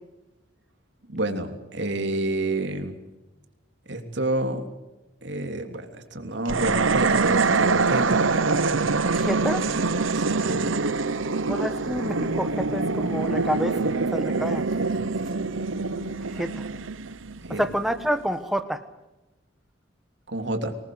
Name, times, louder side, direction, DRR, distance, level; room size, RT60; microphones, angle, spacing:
voice 1, 1.1-3.0 3.9-4.7 5.2-8.3 10.1-10.7 17.4-17.6 20.3-20.7, right 2 dB, 65° right, 5 dB, 3.2 m, -29 dB
sound 1, 6.5-17.8, right 4 dB, 85° right, 0.9 m, -24 dB
voice 2, 9.1-9.6 11.5-13.8 14.1-14.6 16.4-16.6 17.5-18.8, equal, ahead, 9 dB, 1.4 m, -28 dB
25.0 x 19.5 x 7.9 m, 1.0 s
head